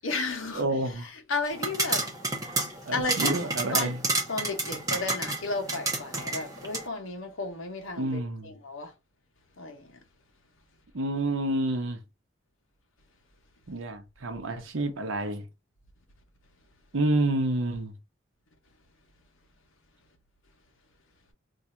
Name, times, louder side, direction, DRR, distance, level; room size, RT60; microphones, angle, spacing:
voice 1, 0.0-0.7 1.0-2.1 2.9-3.3 3.7-4.0 4.3-8.9 9.6-10.0, left 3 dB, 85° left, 0.9 m, -33 dB
voice 2, 0.5-1.1 2.9-4.0 8.0-8.5 10.9-12.0 13.7-15.5 16.9-17.9, right 2 dB, 80° right, 0.8 m, -29 dB
sound 1, 1.5-6.9, right 2 dB, 15° right, 0.7 m, -30 dB
2.6 x 2.4 x 4.2 m
head